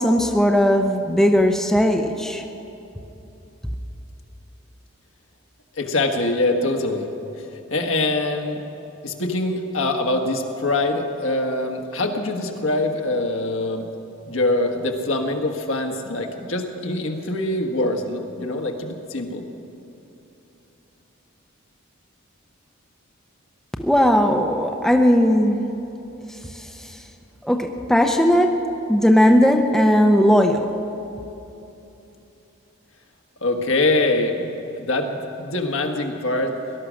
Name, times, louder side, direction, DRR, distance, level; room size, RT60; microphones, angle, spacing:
voice 1, 0.0-2.4 23.8-25.6 26.5-27.0 27.4-28.5 28.9-30.7, equal, ahead, 3 dB, 0.6 m, -17 dB
voice 2, 5.8-7.1 7.4-8.6 9.0-13.9 14.3-19.4 33.4-36.5, left 2 dB, 70° left, 3 dB, 1.5 m, -24 dB
18.5 x 11.5 x 6.3 m, 3.0 s
head